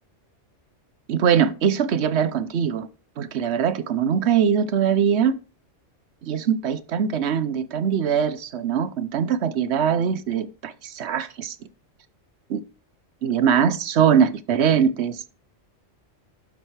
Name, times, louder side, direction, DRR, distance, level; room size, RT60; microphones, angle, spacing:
voice 1, 1.1-2.9 3.2-5.4 6.2-11.6 12.5-12.6 13.2-15.2, right 8 dB, 65° right, 1.0 m, -22 dB
11.5 x 7.6 x 3.2 m
omnidirectional pair, 1.2 m